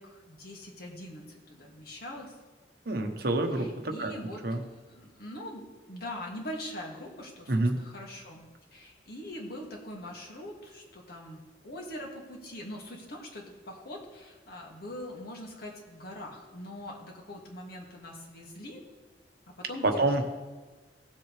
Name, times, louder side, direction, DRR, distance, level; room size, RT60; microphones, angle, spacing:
voice 1, 0.0-2.3 3.5-8.5 8.7-18.8 19.5-20.2, left 1 dB, 60° left, -1 dB, 2.0 m, -43 dB
voice 2, 2.9-4.1 4.4-4.6 7.5-7.8 19.8-20.2, right 2 dB, 65° right, 5 dB, 1.1 m, -27 dB
17.5 x 7.4 x 3.3 m, 1.3 s
head